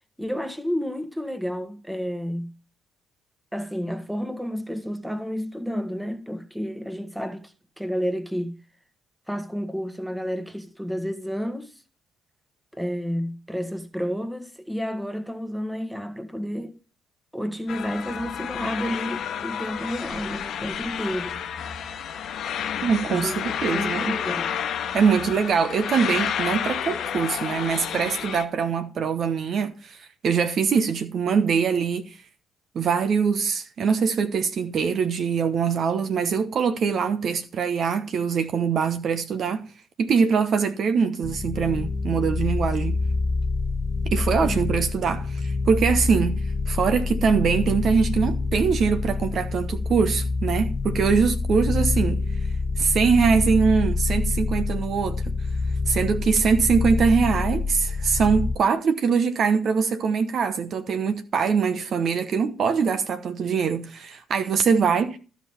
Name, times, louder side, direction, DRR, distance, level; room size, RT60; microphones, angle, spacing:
voice 1, 0.2-2.5 3.5-8.6 9.3-11.7 12.7-16.7 17.3-21.4 23.0-24.5 44.4-44.6, equal, 5° right, 1.5 m, -31 dB
sound 1, 17.7-28.4, left 8 dB, 55° left, 1.1 m, -30 dB
voice 2, 22.8-24.2 24.9-32.2 32.7-39.6 40.0-43.0 44.1-52.2 52.8-55.3 55.9-65.2, right 6 dB, 50° right, 1.0 m, -23 dB
sound 2, 41.2-58.6, left 3 dB, 30° left, 0.8 m, -26 dB
14.0 x 5.2 x 5.6 m
figure-of-eight pair, 45°, 0 cm